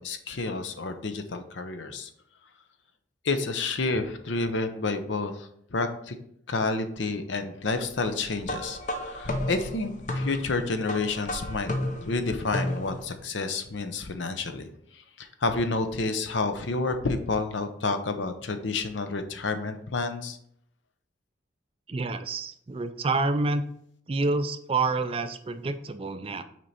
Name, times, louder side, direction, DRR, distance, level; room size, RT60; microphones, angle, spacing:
voice 1, 0.0-2.1 3.2-6.2 6.5-11.7 12.0-20.4, left 3 dB, 70° left, 8 dB, 0.7 m, -30 dB
sound 1, 8.4-13.2, left 1 dB, 40° left, 0.7 m, -33 dB
voice 2, 21.9-23.6 24.1-26.4, right 3 dB, 30° right, 11 dB, 0.4 m, -28 dB
6.2 x 4.5 x 4.1 m, 0.69 s
head